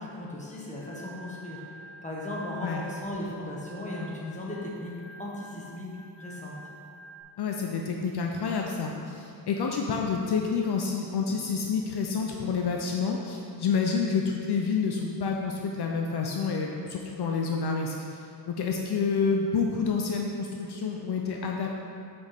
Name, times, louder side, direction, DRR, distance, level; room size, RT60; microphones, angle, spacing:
voice 1, 0.0-4.9 5.2-5.9 6.2-6.5, left 1 dB, 15° left, -5 dB, 1.5 m, -37 dB
Organ, 0.8-7.2, right 2 dB, 85° right, 1.8 m, -48 dB
voice 2, 7.4-18.2 18.5-21.7, left 5 dB, 65° left, 1 dB, 0.7 m, -28 dB
7.7 x 6.3 x 3.5 m, 2.6 s
wide cardioid pair, 120°, 42 cm